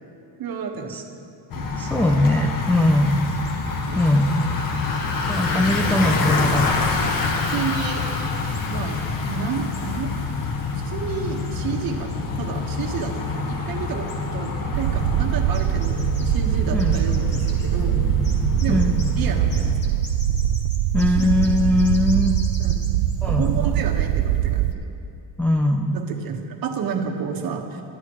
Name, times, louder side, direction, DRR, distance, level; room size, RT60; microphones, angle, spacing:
voice 1, 0.4-1.2 1.5-1.7 3.9-4.3 7.5-8.0 8.5-9.0 9.3-10.1 10.7-18.0 18.6-18.8 19.2-19.7 21.0-21.3 22.6-22.9 23.2-24.9 25.9-27.8, right 6 dB, 50° right, 2 dB, 1.6 m, -31 dB
Bicycle, 1.5-19.7, left 4 dB, 50° left, 1.6 m, -26 dB
voice 2, 1.8-3.5 4.0-4.5 5.3-6.8 16.7-17.0 18.7-19.0 20.9-22.3 23.2-23.7 25.4-26.0, left 1 dB, 5° left, 1 dB, 0.4 m, -21 dB
sound 1, 14.7-24.7, right 12 dB, 85° right, 0.6 m, -22 dB
sound 2, 15.5-16.4 16.8-18.0 18.2-19.1 19.5-23.1 23.4-23.5, left 2 dB, 25° left, 2.2 m, -41 dB
24.5 x 12.0 x 3.2 m, 2.5 s
cardioid pair, 150°, 44 cm